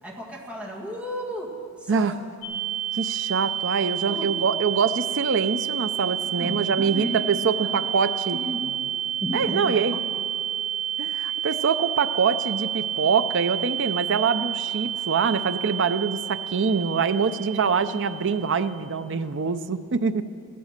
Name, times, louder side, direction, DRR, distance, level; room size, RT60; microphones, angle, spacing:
voice 1, 0.0-2.1 4.1-4.5 6.4-7.2 7.6-7.9 8.3-8.8 9.2-10.0, equal, 5° right, -3 dB, 1.9 m, -34 dB
sound 1, 2.4-18.8, right 10 dB, 80° left, 3.3 m, -30 dB
voice 2, 2.9-8.4 9.3-10.0 11.0-20.2, right 5 dB, 55° right, 11 dB, 0.6 m, -24 dB
15.0 x 11.0 x 6.6 m, 2.3 s
head